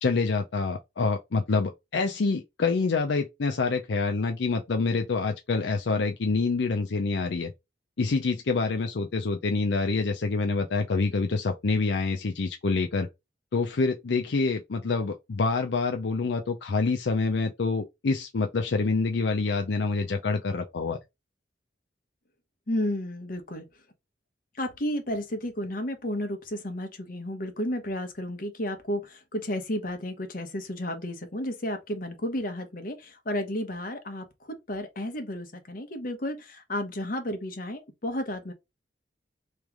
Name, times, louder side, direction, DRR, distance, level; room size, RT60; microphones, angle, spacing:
voice 1, 0.0-7.5 8.0-13.1 13.5-21.0, left 4 dB, 75° left, 0.5 m, -26 dB
voice 2, 22.7-23.7 24.6-38.5, left 1 dB, 50° left, 1.1 m, -32 dB
3.2 x 3.1 x 3.5 m
head